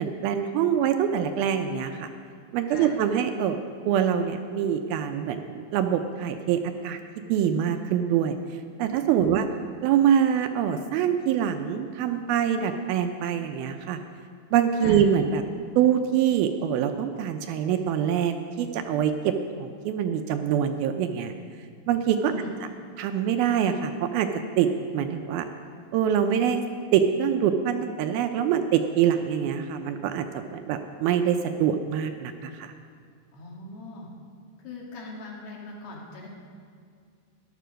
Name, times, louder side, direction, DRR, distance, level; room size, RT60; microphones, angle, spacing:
voice 1, 0.0-2.1 2.5-3.6 3.9-7.0 7.3-8.4 8.8-9.5 9.8-14.0 14.5-15.4 15.8-21.3 21.9-22.3 23.0-24.3 24.6-24.7 24.9-25.5 25.9-26.6 26.9-32.7, right 9 dB, 80° right, 7 dB, 2.3 m, -24 dB
voice 2, 9.2-9.5 14.8-15.0 22.3-22.5 33.3-34.1 34.6-36.3, left 2 dB, 75° left, -2 dB, 4.0 m, -41 dB
13.5 x 11.0 x 6.3 m, 2.2 s
omnidirectional pair, 4.7 m